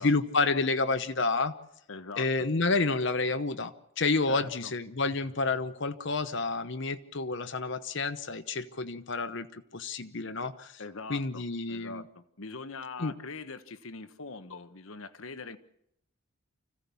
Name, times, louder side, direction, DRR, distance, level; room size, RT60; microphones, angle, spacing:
voice 1, 0.0-1.5 2.2-10.8 11.1-12.0 13.0-13.1, left 3 dB, 55° left, 11 dB, 0.9 m, -29 dB
voice 2, 1.9-2.3 4.3-4.7 10.8-15.6, left 4 dB, 70° left, 11 dB, 1.2 m, -42 dB
25.5 x 16.0 x 7.0 m, 0.79 s
head